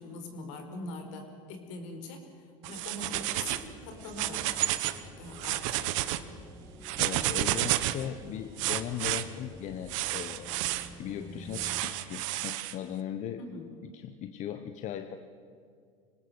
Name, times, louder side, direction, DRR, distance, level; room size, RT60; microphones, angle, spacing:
voice 1, 0.0-4.6 4.9-5.9 13.4-13.7, left 2 dB, 70° left, 6 dB, 4.6 m, -43 dB
sound 1, 2.6-3.7 4.0-5.0 5.3-6.2 6.8-8.0 8.6-9.2 9.9-10.9 11.5-12.7, right 16 dB, 70° right, 1.3 m, -31 dB
sound 2, 3.0-11.8, equal, 15° left, 4.5 m, -49 dB
voice 2, 7.0-13.4 13.9-15.2, left 10 dB, 45° left, 9 dB, 1.2 m, -38 dB
25.5 x 19.0 x 8.1 m, 2.3 s
hypercardioid pair, 100°, 17 cm